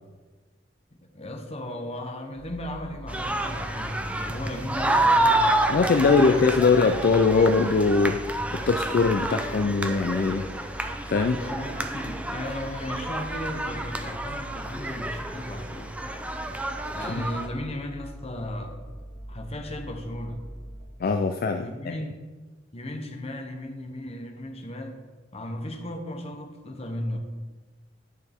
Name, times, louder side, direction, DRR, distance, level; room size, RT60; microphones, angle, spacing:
voice 1, 0.9-5.5 5.8-6.8 11.1-15.9 16.9-18.8 19.3-20.5 21.6-22.2 22.7-25.0 25.3-27.2, left 1 dB, 35° left, 4 dB, 1.0 m, -36 dB
sound 1, 2.3-20.9, right 1 dB, 45° right, 1.6 m, -42 dB
sound 2, 3.1-17.5, right 1 dB, 5° right, 0.5 m, -29 dB
voice 2, 5.7-8.2 8.7-10.5 11.1-11.4 21.0-22.0, left 4 dB, 50° left, 5 dB, 0.4 m, -21 dB
10.5 x 6.4 x 3.6 m, 1.3 s
head